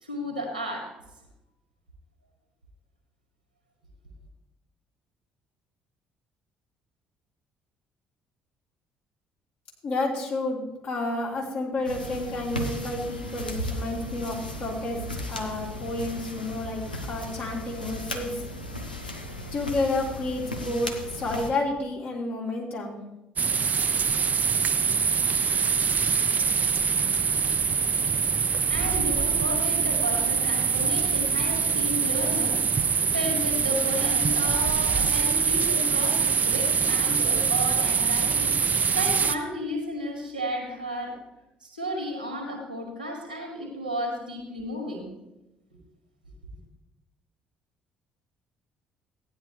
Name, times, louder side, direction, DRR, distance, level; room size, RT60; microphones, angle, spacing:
voice 1, 0.0-0.9 28.5-41.2 41.6-45.1, equal, 90° right, 2 dB, 1.9 m, -33 dB
voice 2, 9.8-18.4 19.5-23.0, left 2 dB, 50° left, -3 dB, 3.2 m, -30 dB
sound 1, 11.8-21.5, left 1 dB, 90° left, 0.8 m, -36 dB
sound 2, 23.4-39.4, right 6 dB, 35° right, 0.6 m, -24 dB
15.0 x 10.0 x 3.2 m, 0.94 s
figure-of-eight pair, 50°, 5 cm